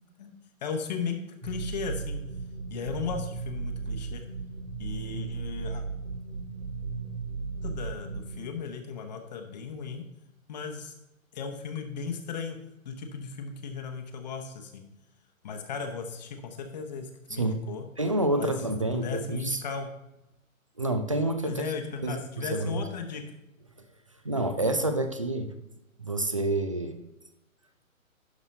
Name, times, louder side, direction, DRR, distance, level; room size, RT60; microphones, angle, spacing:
voice 1, 0.6-2.2 2.7-4.2 4.8-5.8 7.6-10.0 10.5-10.9 11.3-12.6 12.8-14.8 15.4-17.8 18.4-18.5 18.9-19.9 21.4-23.2, left 5 dB, 30° left, 4 dB, 0.9 m, -36 dB
sound 1, 1.4-8.4, right 4 dB, 70° right, 2.1 m, -36 dB
voice 2, 17.3-17.7 18.0-19.6 20.8-21.6 22.0-22.9 24.2-25.5 26.0-27.0, right 2 dB, 25° right, 9 dB, 0.4 m, -28 dB
11.5 x 4.1 x 5.5 m, 0.90 s
figure-of-eight pair, 130°, 42 cm